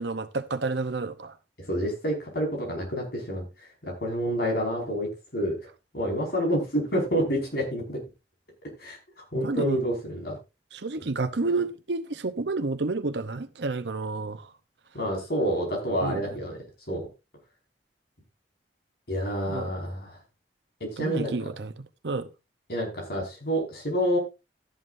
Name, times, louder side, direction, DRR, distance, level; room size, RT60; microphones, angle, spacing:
voice 1, 0.0-1.3 9.4-9.8 10.7-14.5 16.0-16.2 19.5-19.7 21.0-21.7 22.0-22.3, right 3 dB, 75° right, 0.8 m, -30 dB
voice 2, 1.7-3.4 3.8-5.6 5.9-8.0 8.8-9.0 9.3-10.4 14.9-16.6 16.9-17.0 19.1-20.2 20.8-21.5 22.7-24.2, equal, 60° left, 5.2 m, -28 dB
14.0 x 11.0 x 2.6 m
head